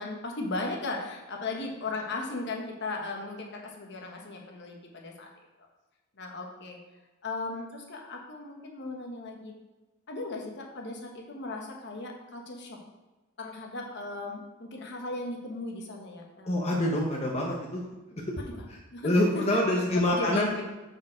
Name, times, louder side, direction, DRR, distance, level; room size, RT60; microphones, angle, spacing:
voice 1, 0.0-5.3 6.2-6.8 7.2-9.5 10.1-12.8 13.4-16.7 18.9-19.1 19.5-19.6 20.1-20.6, left 2 dB, 55° left, 1 dB, 1.1 m, -37 dB
voice 2, 16.5-17.8 18.3-18.4 18.7-18.8 19.0-20.6, left 1 dB, 30° left, -1 dB, 0.8 m, -26 dB
6.3 x 5.2 x 4.8 m, 1.1 s
head